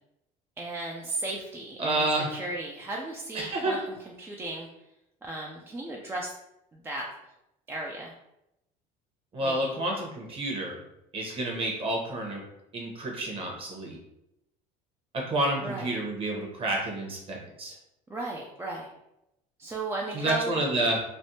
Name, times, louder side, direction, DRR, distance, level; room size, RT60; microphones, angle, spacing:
voice 1, 0.6-4.7 5.2-6.3 6.8-7.1 7.7-8.1 9.4-9.7 15.6-15.9 18.1-18.9 19.6-20.6, right 2 dB, 15° right, -2 dB, 0.3 m, -35 dB
voice 2, 1.8-2.3 3.3-3.7 9.3-10.8 11.1-12.4 12.7-14.0 15.3-17.7 20.1-21.0, right 1 dB, 35° right, -1 dB, 0.9 m, -29 dB
3.3 x 2.1 x 2.7 m, 0.85 s
cardioid pair, 115°, 17 cm